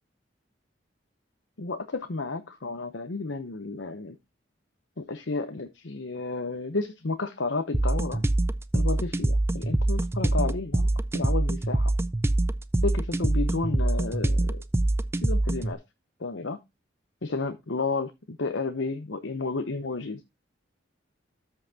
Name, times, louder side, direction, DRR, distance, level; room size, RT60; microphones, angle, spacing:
voice 1, 1.6-4.2 5.0-8.2 8.7-10.9 11.1-11.9 12.8-14.6 15.2-15.8 16.2-16.6 17.2-20.2, left 3 dB, 75° left, 0.8 m, -32 dB
sound 1, 7.7-15.7, right 1 dB, 15° right, 0.4 m, -25 dB
13.0 x 5.7 x 2.8 m
head